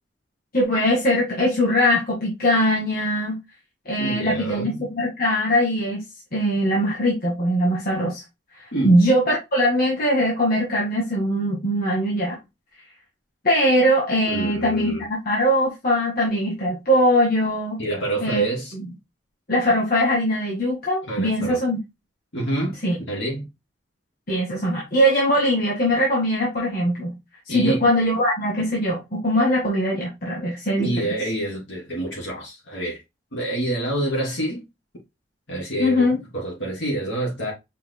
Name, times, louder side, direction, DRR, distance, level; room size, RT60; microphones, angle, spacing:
voice 1, 0.5-3.4 3.9-6.0 6.3-8.2 8.8-12.4 13.4-17.8 18.2-18.4 18.7-18.9 19.5-21.8 22.8-23.0 24.3-27.1 27.5-31.1 35.8-36.2, equal, 50° left, 1.9 m, -21 dB
voice 2, 4.0-4.8 8.7-9.0 14.2-15.0 17.8-18.7 21.1-21.6 22.3-22.8 23.0-23.5 27.5-27.9 30.8-33.0 33.3-34.6 35.5-37.5, right 1 dB, 70° left, 2.9 m, -27 dB
5.5 x 3.8 x 2.2 m
head